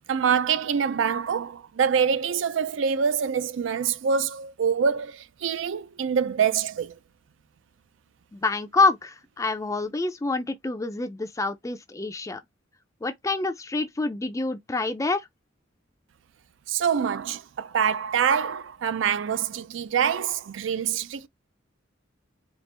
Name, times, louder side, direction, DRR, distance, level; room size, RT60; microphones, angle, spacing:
voice 1, 0.1-6.9 16.7-21.3, right 7 dB, 70° right, 0.4 m, -25 dB
voice 2, 8.3-12.4 13.0-15.3, left 3 dB, 15° left, 0.4 m, -27 dB
4.3 x 2.4 x 3.3 m
head